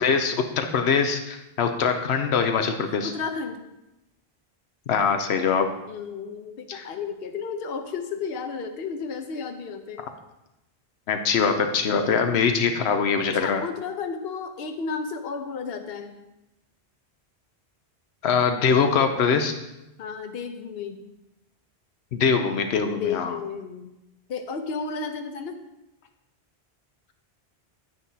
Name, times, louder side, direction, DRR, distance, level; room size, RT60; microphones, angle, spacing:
voice 1, 0.0-3.1 4.9-5.7 6.7-6.8 11.1-13.6 18.2-19.5 22.1-23.3, left 6 dB, 85° left, 6 dB, 1.0 m, -23 dB
voice 2, 3.0-3.6 5.9-10.0 13.3-16.2 20.0-21.0 23.0-23.9 24.3-25.6, left 5 dB, 70° left, 6 dB, 1.0 m, -32 dB
9.6 x 9.3 x 2.8 m, 0.92 s
omnidirectional pair, 1.1 m